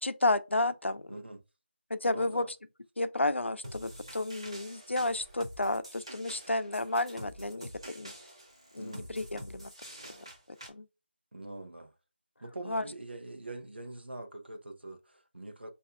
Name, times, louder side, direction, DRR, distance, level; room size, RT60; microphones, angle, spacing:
voice 1, 0.0-1.2 1.9-2.5 3.0-8.1 8.7-9.7 10.5-10.9 12.7-12.8, left 2 dB, 90° left, 0.5 m, -31 dB
voice 2, 1.1-1.4 2.1-2.5 8.8-9.1 11.3-11.9 12.4-15.7, right 2 dB, 65° right, 0.9 m, -44 dB
sound 1, 3.6-10.7, equal, 30° right, 0.6 m, -47 dB
6.3 x 2.7 x 2.4 m
figure-of-eight pair, 175°, 6 cm